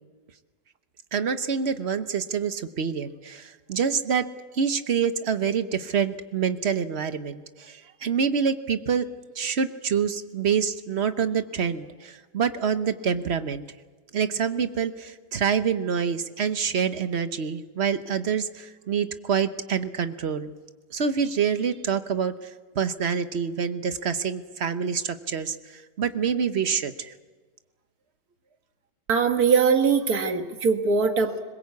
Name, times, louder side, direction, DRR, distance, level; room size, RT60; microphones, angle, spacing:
voice 1, 1.1-4.3 4.5-9.1 9.4-13.6 14.1-20.5 20.9-22.5 22.7-27.1, right 7 dB, 50° right, 10 dB, 1.1 m, -26 dB
voice 2, 29.1-31.4, right 5 dB, 70° right, 6 dB, 2.0 m, -21 dB
22.0 x 21.0 x 8.4 m, 1.3 s
omnidirectional pair, 1.7 m